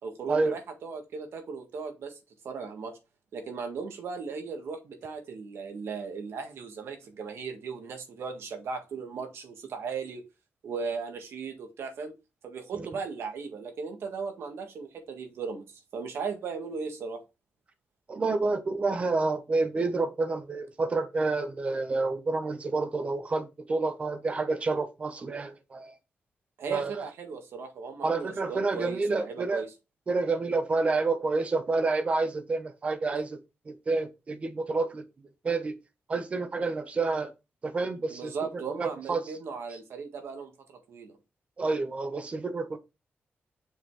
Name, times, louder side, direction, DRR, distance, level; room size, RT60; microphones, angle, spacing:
voice 1, 0.0-2.2 2.4-3.0 3.3-10.2 10.6-12.1 12.4-17.2 26.6-29.7 38.1-40.5 40.9-41.1, right 5 dB, 75° right, 1.6 m, -37 dB
voice 2, 18.1-25.9 26.7-27.0 28.0-29.6 30.1-33.4 33.7-35.0 35.4-35.7 36.1-37.3 37.6-38.3 38.8-39.2 41.6-42.8, right 3 dB, 30° right, 1.0 m, -29 dB
6.5 x 5.7 x 3.2 m
wide cardioid pair, 175°, 4 cm